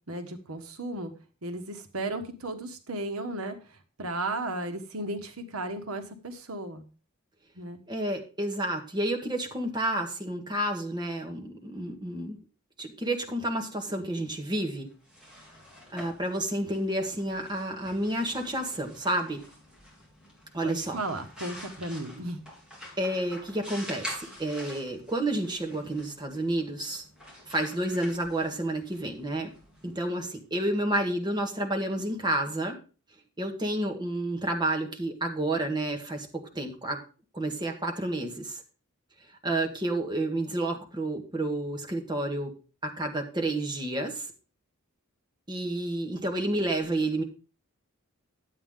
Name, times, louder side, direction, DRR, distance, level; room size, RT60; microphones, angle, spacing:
voice 1, 0.1-1.1 1.4-3.6 4.0-6.8 7.6-7.8 20.6-22.4, right 2 dB, 85° right, 7 dB, 1.3 m, -34 dB
voice 2, 7.9-12.4 12.8-14.9 15.9-19.4 20.5-21.0 23.0-27.0 27.5-29.5 29.8-32.8 33.4-37.0 37.3-38.6 39.4-42.5 42.8-44.3 45.5-47.2, right 1 dB, 20° right, 3 dB, 1.7 m, -30 dB
sound 1, 14.9-30.6, equal, 5° right, 3.9 m, -47 dB
11.0 x 8.4 x 3.7 m, 0.34 s
head